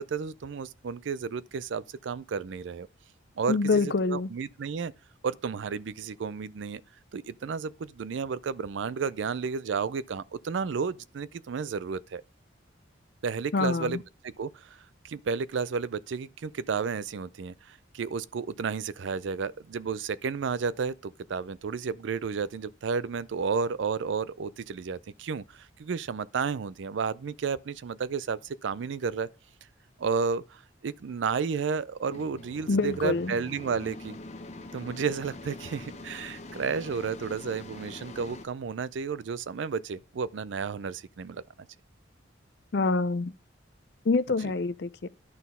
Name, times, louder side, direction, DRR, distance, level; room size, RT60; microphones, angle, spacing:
voice 1, 0.0-2.9 3.4-4.9 5.2-6.8 7.1-12.2 13.2-29.3 30.0-34.2 34.7-41.4 44.4-44.5, right 5 dB, 70° right, 0.4 m, -32 dB
voice 2, 3.5-4.3 13.5-14.0 32.7-33.3 42.7-43.3 44.1-45.1, left 3 dB, 55° left, 0.5 m, -26 dB
sound 1, 32.1-38.5, left 2 dB, 35° left, 0.8 m, -44 dB
11.0 x 4.1 x 5.4 m
head